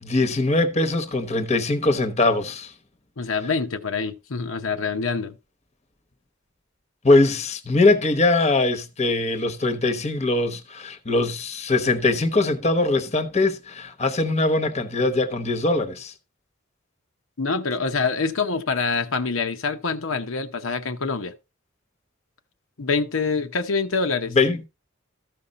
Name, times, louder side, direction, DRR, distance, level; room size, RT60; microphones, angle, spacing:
voice 1, 0.0-2.7 7.0-16.1 24.3-24.7, left 2 dB, 30° left, 1.0 m, -21 dB
voice 2, 3.2-5.4 17.4-21.3 22.8-24.4, left 4 dB, 80° left, 0.9 m, -25 dB
14.0 x 5.4 x 4.0 m
head